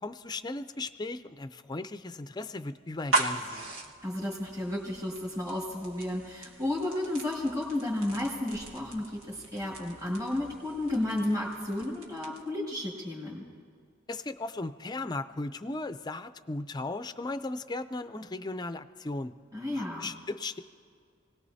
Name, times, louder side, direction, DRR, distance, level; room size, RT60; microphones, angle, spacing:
voice 1, 0.0-3.7 14.1-19.3 19.7-20.6, left 2 dB, 20° left, 11 dB, 0.4 m, -36 dB
sound 1, 2.9-12.6, right 3 dB, 85° right, 1.5 m, -38 dB
voice 2, 4.0-13.4 19.5-20.1, left 1 dB, 15° right, -6 dB, 2.1 m, -32 dB
28.0 x 18.5 x 2.7 m, 2.1 s
head